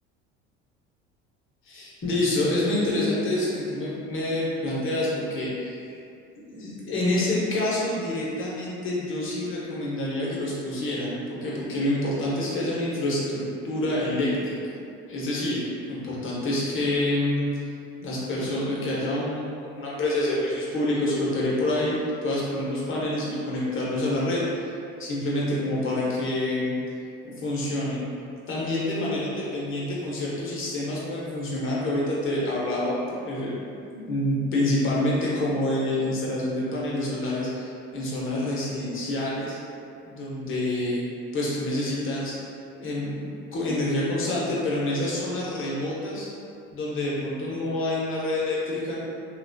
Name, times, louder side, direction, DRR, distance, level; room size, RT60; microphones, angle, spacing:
voice 1, 1.7-5.9 6.4-14.8 15.0-17.4 18.0-24.7 25.0-26.7 27.2-28.0 28.5-32.9 33.2-33.6 33.9-39.6 40.1-41.0 41.3-42.3 42.7-46.3 46.7-49.0, left 1 dB, 40° left, -6 dB, 0.9 m, -27 dB
2.9 x 2.3 x 2.6 m, 2.4 s
hypercardioid pair, 80°, 31 cm